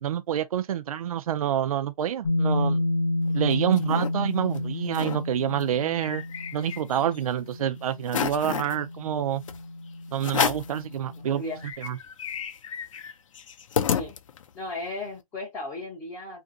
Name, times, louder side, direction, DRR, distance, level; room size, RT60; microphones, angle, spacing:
voice 1, 0.0-2.8 3.3-6.2 6.5-9.4 10.1-11.4 11.8-12.0, right 10 dB, 70° right, 0.4 m, -27 dB
sound 1, 2.2-11.7, left 2 dB, 40° left, 0.9 m, -31 dB
sound 2, 3.3-4.1 4.5-4.6 4.9-5.2 5.6-7.2 7.6-7.7 8.1-8.8 9.5-9.6 10.2-10.8 11.3-11.4 11.6-14.6, left 8 dB, 55° left, 0.5 m, -30 dB
voice 2, 11.2-11.6 13.9-14.1 14.5-16.4, left 2 dB, 10° left, 0.5 m, -35 dB
2.6 x 2.5 x 3.7 m
hypercardioid pair, 165°, 19 cm